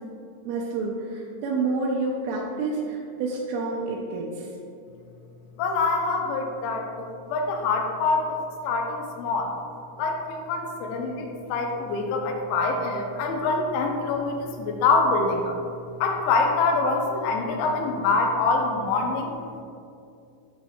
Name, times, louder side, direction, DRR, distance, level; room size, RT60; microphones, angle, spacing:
voice 1, 0.5-4.5, right 3 dB, 85° right, -3 dB, 3.1 m, -28 dB
voice 2, 5.6-9.5 10.0-15.6 16.0-19.3, left 3 dB, 85° left, 2 dB, 3.0 m, -25 dB
8.2 x 3.1 x 4.2 m, 2.5 s
omnidirectional pair, 5.4 m